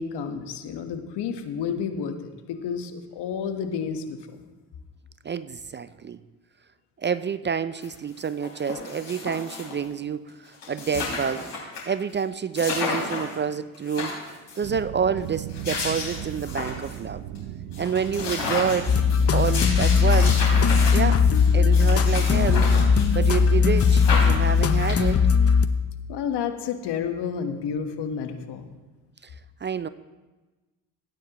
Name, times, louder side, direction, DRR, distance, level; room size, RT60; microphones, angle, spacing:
voice 1, 0.0-4.2 26.1-28.7, left 7 dB, 65° left, 6 dB, 1.3 m, -30 dB
voice 2, 5.2-6.2 7.0-11.5 11.9-14.1 14.6-17.2 17.8-19.0 19.3-20.5 20.9-21.3 21.5-22.7 23.1-25.3 29.2-29.3 29.6-29.9, right 6 dB, 25° right, 14 dB, 0.4 m, -28 dB
sound 1, 7.8-7.9 8.2-9.9 10.3-10.4 10.5-11.8 12.1-12.2 12.6-13.4 13.7-14.6 15.3-17.0 17.4-17.5 17.7-23.5 23.8-25.3, left 4 dB, 90° left, 3.9 m, -32 dB
sound 2, 14.6-24.7, right 12 dB, 70° right, 0.7 m, -36 dB
sound 3, 18.9-25.7, left 6 dB, 35° left, 0.8 m, -19 dB
16.5 x 9.1 x 3.0 m, 1.2 s
hypercardioid pair, 50°, 43 cm